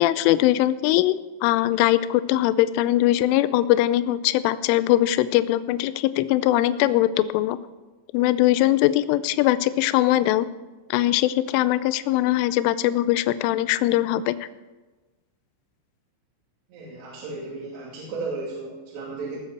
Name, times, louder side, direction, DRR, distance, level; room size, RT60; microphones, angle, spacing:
voice 1, 0.0-7.6 8.1-10.5 10.9-14.4, left 14 dB, 90° left, 14 dB, 3.1 m, -21 dB
voice 2, 16.7-19.4, right 3 dB, 65° right, -5 dB, 4.6 m, -34 dB
19.5 x 7.3 x 6.8 m, 1.2 s
omnidirectional pair, 5.5 m